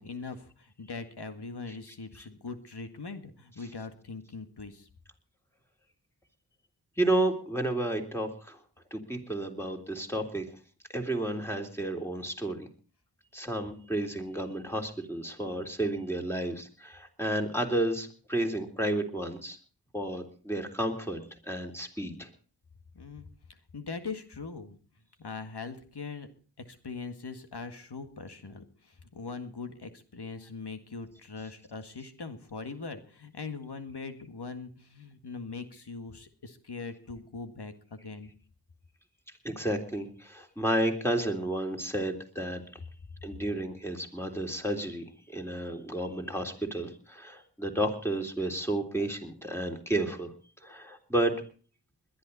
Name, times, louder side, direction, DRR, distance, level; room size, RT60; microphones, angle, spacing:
voice 1, 0.0-4.9 22.9-24.8 25.2-26.3 26.7-38.3, left 4 dB, 70° left, 8 dB, 1.9 m, -41 dB
voice 2, 7.0-8.6 8.9-10.5 10.9-12.7 13.3-19.6 19.9-22.3 39.4-42.6 43.2-50.3 50.6-51.3, right 1 dB, 5° left, 2 dB, 3.5 m, -31 dB
21.5 x 11.5 x 4.1 m, 0.40 s
cardioid pair, 40°, 42 cm